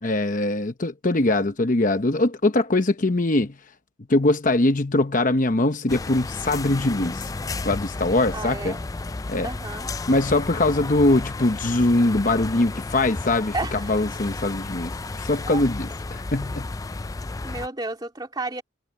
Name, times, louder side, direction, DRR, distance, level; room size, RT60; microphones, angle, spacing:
voice 1, 0.0-3.5 4.1-7.3 7.6-8.8 9.3-9.5 10.1-16.7, left 2 dB, 45° left, 0.9 m, -22 dB
sound 1, 5.9-17.7, left 3 dB, 20° left, 0.4 m, -33 dB
voice 2, 8.3-8.8 9.4-9.9 13.5-14.0 15.5-15.6 17.4-18.6, right 2 dB, 20° right, 2.5 m, -32 dB
head